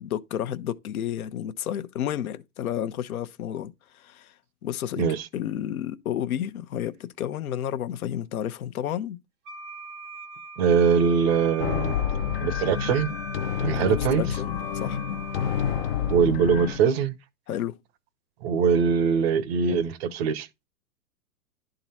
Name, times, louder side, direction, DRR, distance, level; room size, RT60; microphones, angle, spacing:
voice 1, 0.0-4.3 4.6-5.1 5.3-9.2 13.8-15.0 17.5-17.8, left 10 dB, 60° left, 0.9 m, -31 dB
voice 2, 5.0-5.3 10.6-12.0 12.4-13.1 13.6-14.2 16.1-17.1 18.4-20.5, right 6 dB, 40° right, 0.8 m, -22 dB
Wind instrument woodwind instrument, 9.5-16.2, right 2 dB, 10° right, 0.3 m, -42 dB
sound 1, 11.6-16.8, left 8 dB, 40° left, 0.6 m, -28 dB
11.0 x 3.9 x 4.1 m
hypercardioid pair, 125°, 48 cm